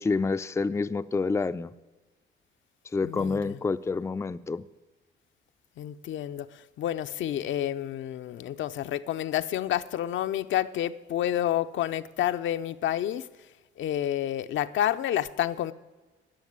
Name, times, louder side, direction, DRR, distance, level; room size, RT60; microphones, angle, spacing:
voice 1, 0.0-1.7 2.9-4.6, left 4 dB, 15° left, 0.4 m, -28 dB
voice 2, 3.0-3.6 5.8-13.3 13.8-15.7, left 11 dB, 75° left, 0.6 m, -29 dB
13.0 x 6.6 x 9.5 m
cardioid pair, 90°, 20 cm